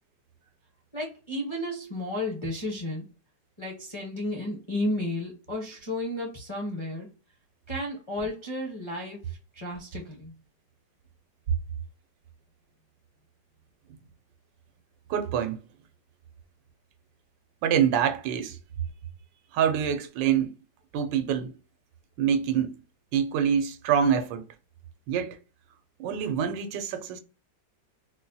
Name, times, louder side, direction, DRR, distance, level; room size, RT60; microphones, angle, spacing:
voice 1, 0.9-3.0 3.6-7.1 7.7-10.3, left 1 dB, 30° left, 0.5 m, -33 dB
voice 2, 15.1-15.6 17.6-18.6 19.5-20.5 20.9-21.5 22.2-22.7 23.1-24.4 25.1-25.4 26.0-27.2, right 8 dB, 90° right, 1.3 m, -25 dB
4.1 x 2.2 x 2.6 m
omnidirectional pair, 1.9 m